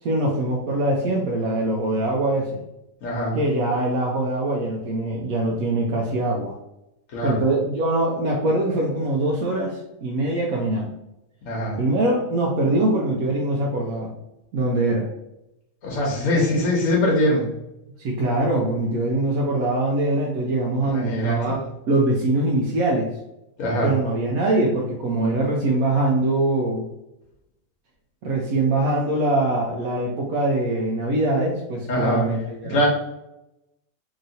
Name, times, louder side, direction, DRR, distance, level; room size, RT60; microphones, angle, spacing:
voice 1, 0.0-2.6 3.3-6.6 7.2-10.9 11.8-14.1 14.5-15.1 16.3-16.4 18.0-21.6 21.9-23.1 23.8-26.9 28.2-32.8, right 2 dB, 75° right, -2 dB, 1.0 m, -23 dB
voice 2, 3.0-3.4 7.1-7.4 11.4-11.8 15.8-17.5 20.9-21.5 23.6-23.9 31.9-32.2 32.6-32.9, left 1 dB, 70° left, -3 dB, 1.1 m, -22 dB
3.0 x 2.8 x 2.6 m, 0.89 s
omnidirectional pair, 1.5 m